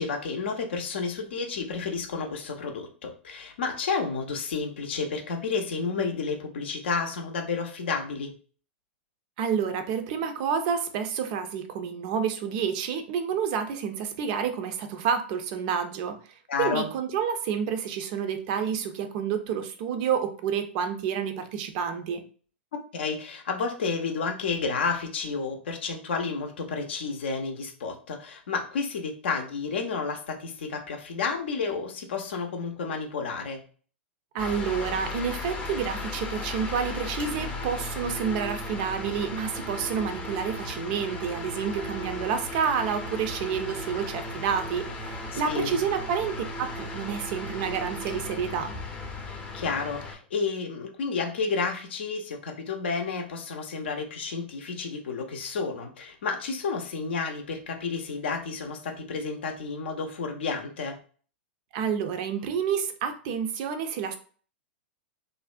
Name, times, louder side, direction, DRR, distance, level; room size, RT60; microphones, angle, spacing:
voice 1, 0.0-8.3 16.5-16.9 22.9-33.6 45.3-45.8 49.3-61.0, left 4 dB, 70° left, 4 dB, 0.5 m, -31 dB
voice 2, 9.4-16.2 16.6-22.2 34.3-48.7 61.7-64.2, right 7 dB, 45° right, 7 dB, 0.4 m, -29 dB
sound 1, 34.4-50.1, left 2 dB, 15° left, 0.5 m, -36 dB
2.5 x 2.0 x 2.4 m, 0.42 s
hypercardioid pair, 105°, 6 cm